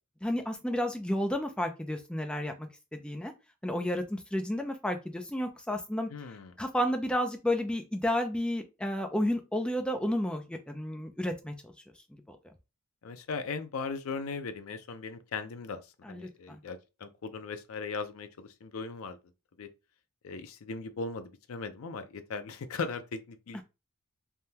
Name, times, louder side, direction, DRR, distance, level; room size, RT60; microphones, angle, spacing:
voice 1, 0.2-2.7 3.0-3.3 3.6-6.1 6.6-11.7 12.3-12.4 16.0-16.2, left 1 dB, 5° left, 0.3 m, -31 dB
voice 2, 6.1-6.6 13.0-19.2 19.6-19.7 20.2-23.6, left 4 dB, 80° left, 0.5 m, -38 dB
3.4 x 2.2 x 2.8 m
head